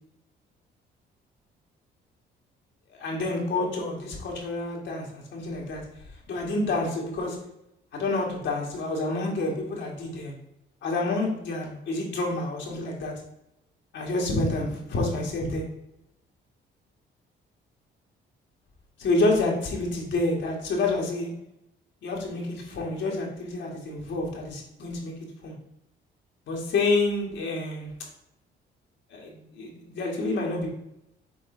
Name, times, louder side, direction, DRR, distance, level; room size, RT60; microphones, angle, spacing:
voice 1, 2.9-5.8 6.3-7.4 7.9-10.3 10.8-13.1 13.9-15.6 19.0-21.3 22.0-25.1 25.4-25.5 26.5-27.9 29.1-30.7, left 2 dB, 70° left, -2 dB, 1.9 m, -28 dB
6.3 x 3.9 x 3.9 m, 0.82 s
cardioid pair, 90°, 20 cm